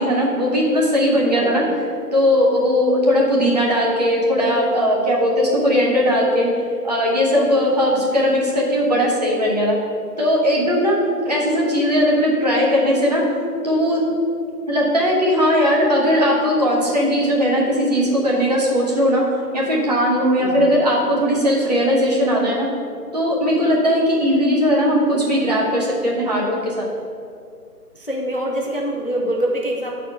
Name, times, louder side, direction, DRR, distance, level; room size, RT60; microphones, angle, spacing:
voice 1, 0.0-1.6 2.1-6.5 6.8-9.7 10.2-13.2 13.6-14.0 14.7-19.2 19.5-22.7 23.1-26.9, equal, 25° right, -4 dB, 1.0 m, -18 dB
voice 2, 1.3-1.7 20.4-21.1 27.9-30.0, right 1 dB, 35° left, -1 dB, 0.5 m, -25 dB
6.1 x 4.4 x 6.5 m, 2.4 s
figure-of-eight pair, 160°, 48 cm